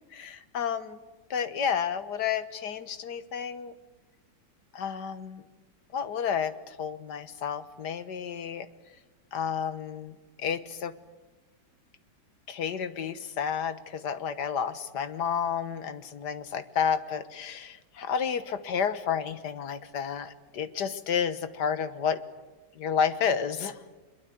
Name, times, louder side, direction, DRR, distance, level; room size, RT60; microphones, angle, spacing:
voice 1, 0.1-1.0 1.3-3.7 4.7-5.4 5.9-8.7 9.3-10.9 12.5-22.2 22.8-23.8, left 7 dB, 60° left, 12 dB, 1.8 m, -31 dB
23.5 x 22.5 x 9.2 m, 1.2 s
omnidirectional pair, 2.0 m